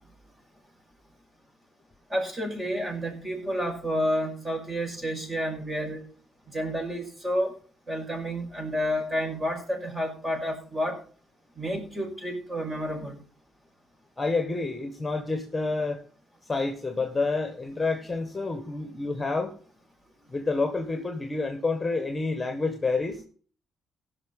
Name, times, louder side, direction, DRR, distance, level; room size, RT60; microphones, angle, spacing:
voice 1, 2.1-6.1 6.5-7.5 7.9-11.0 11.5-13.2, equal, 25° right, 1 dB, 5.8 m, -30 dB
voice 2, 14.2-16.0 16.4-19.5 20.3-23.2, left 3 dB, 15° left, 6 dB, 1.7 m, -28 dB
16.5 x 6.1 x 5.5 m, 0.41 s
cardioid pair, 100°, 0 cm